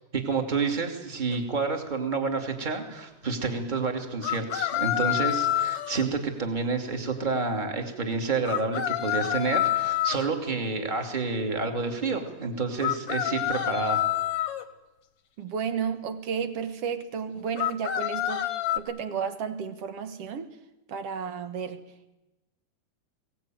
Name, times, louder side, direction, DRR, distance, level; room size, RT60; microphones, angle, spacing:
voice 1, 0.1-14.1, right 4 dB, 15° right, 4 dB, 2.2 m, -29 dB
sound 1, 1.3-1.4 4.2-6.1 8.4-10.3 12.8-14.6 17.6-18.8, left 13 dB, 60° left, 1.7 m, -27 dB
voice 2, 15.4-20.5 20.9-21.8, right 6 dB, 55° right, 10 dB, 2.0 m, -32 dB
22.5 x 18.0 x 9.1 m, 1.0 s
omnidirectional pair, 3.9 m